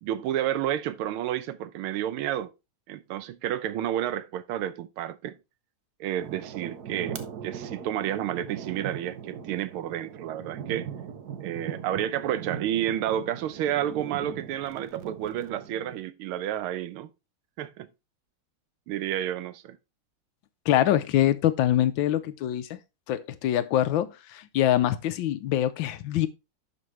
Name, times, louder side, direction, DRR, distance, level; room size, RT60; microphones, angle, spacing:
voice 1, 0.0-2.5 2.9-5.4 6.0-10.9 11.4-17.1 17.6-17.9 18.9-19.8, right 11 dB, 85° right, 1.6 m, -30 dB
sound 1, 6.2-16.0, right 8 dB, 60° right, 1.2 m, -40 dB
voice 2, 20.7-22.8 23.1-26.3, left 12 dB, 75° left, 1.3 m, -24 dB
11.0 x 5.3 x 3.1 m
omnidirectional pair, 2.3 m